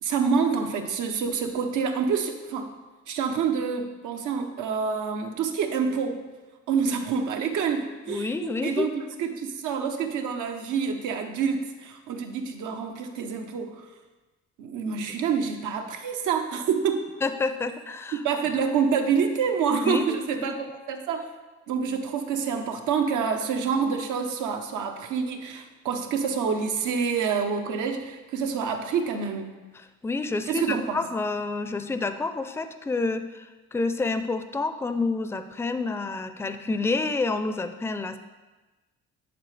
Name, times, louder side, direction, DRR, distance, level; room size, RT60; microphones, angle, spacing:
voice 1, 0.0-2.7 3.1-6.2 6.7-13.9 14.6-17.1 18.1-21.2 21.7-29.5 30.5-31.0, right 6 dB, 85° right, 5 dB, 0.8 m, -27 dB
voice 2, 8.1-8.9 17.2-18.2 19.8-20.2 20.5-20.6 30.0-38.2, left 3 dB, 10° left, 9 dB, 0.4 m, -28 dB
10.0 x 4.1 x 3.3 m, 1.2 s
cardioid pair, 90°, 30 cm